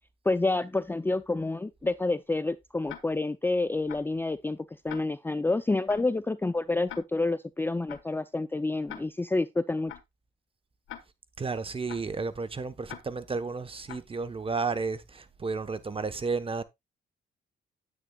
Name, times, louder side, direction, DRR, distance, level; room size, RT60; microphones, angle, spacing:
voice 1, 0.3-4.6 4.8-9.9, left 2 dB, 10° left, 0.5 m, -28 dB
Tick-tock, 2.9-3.0 3.9-4.0 4.9-5.0 5.9-6.0 6.9-7.0 7.9-8.0 8.9-9.0 9.9-10.0 10.9-11.0 11.9-12.0 12.9-13.0 13.9-14.0, left 11 dB, 80° left, 1.4 m, -41 dB
voice 2, 11.4-16.6, right 4 dB, 25° right, 1.0 m, -32 dB
9.8 x 8.7 x 2.3 m
cardioid pair, 90°, 20 cm